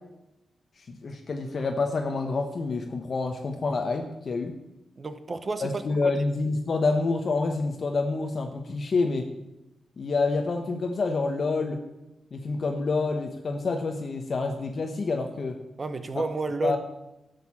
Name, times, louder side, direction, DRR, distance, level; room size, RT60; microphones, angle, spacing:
voice 1, 0.8-4.6 5.6-9.3 10.0-11.8 12.3-15.6 16.1-16.3 16.6-16.8, left 3 dB, 45° left, 3 dB, 1.0 m, -28 dB
voice 2, 5.0-6.1 15.8-16.8, right 3 dB, 35° right, 10 dB, 1.0 m, -31 dB
12.5 x 6.7 x 7.2 m, 0.95 s
wide cardioid pair, 130°, 0 cm